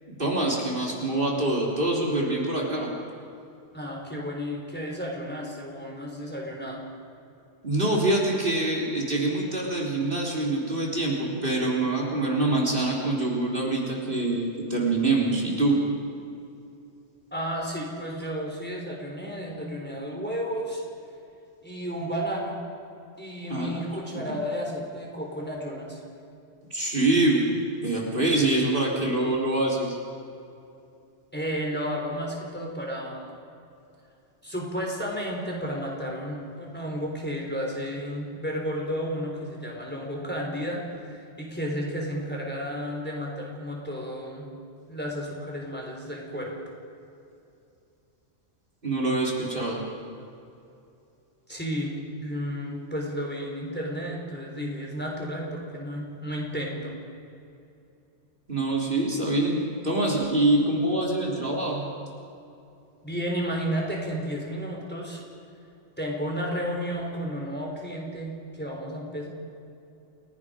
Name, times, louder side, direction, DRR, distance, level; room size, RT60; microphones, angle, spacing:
voice 1, 0.2-2.9 7.6-15.8 23.5-23.8 24.1-24.4 26.7-27.5 27.8-30.0 48.8-49.8 58.5-59.6 59.8-61.9, right 2 dB, 45° right, -3 dB, 3.6 m, -25 dB
voice 2, 3.7-6.8 17.3-20.8 21.6-22.6 23.2-26.0 31.3-33.3 34.4-44.5 44.9-46.5 51.5-56.9 63.0-65.2 66.0-69.3, equal, 10° left, -1 dB, 3.8 m, -32 dB
29.0 x 17.5 x 5.0 m, 2.7 s
omnidirectional pair, 1.2 m